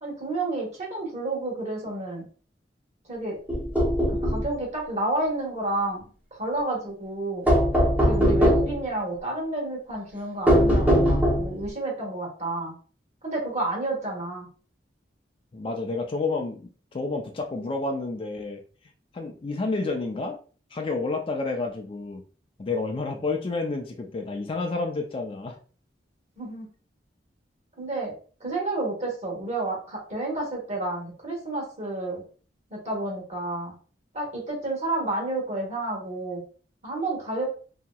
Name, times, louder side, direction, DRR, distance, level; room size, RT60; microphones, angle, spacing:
voice 1, 0.0-2.3 3.1-3.4 4.1-6.0 6.3-7.5 8.0-12.7 13.2-14.5 26.4-26.7 27.8-28.1 28.4-32.2 32.7-33.7 34.1-36.4 36.8-37.5, right 2 dB, 40° right, -3 dB, 1.3 m, -30 dB
sound 1, 3.5-4.5 7.5-8.8 10.5-11.6, equal, 10° right, 0.7 m, -20 dB
voice 2, 15.5-18.6 19.1-20.4 20.7-22.2 22.6-25.6, left 3 dB, 30° left, 3 dB, 0.3 m, -30 dB
2.8 x 2.8 x 2.2 m, 0.40 s
head